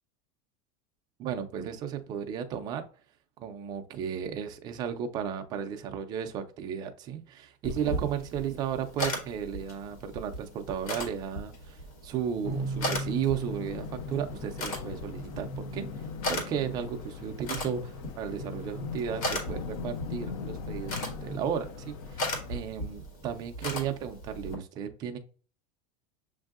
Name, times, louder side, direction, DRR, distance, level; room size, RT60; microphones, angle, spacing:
voice 1, 1.2-2.9 3.4-25.2, right 8 dB, 20° right, 0.4 m, -34 dB
sound 1, 7.6-24.6, left 1 dB, 85° left, 1.7 m, -38 dB
sound 2, 12.4-22.6, left 2 dB, 50° left, 0.5 m, -38 dB
7.0 x 2.6 x 2.4 m
supercardioid pair, 180°, 18 cm